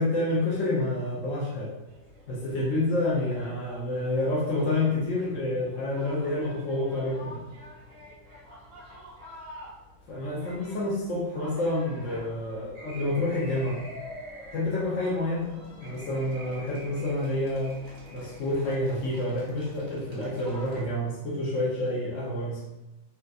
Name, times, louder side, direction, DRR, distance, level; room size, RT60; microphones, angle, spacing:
voice 1, 0.0-1.7 2.3-7.4 10.1-13.8 14.5-15.5 15.8-17.7 18.1-22.7, left 1 dB, 65° left, -6 dB, 0.7 m, -28 dB
sound 1, 1.8-20.8, equal, 55° right, 0.4 m, -47 dB
3.4 x 2.8 x 2.3 m, 0.99 s
omnidirectional pair, 2.1 m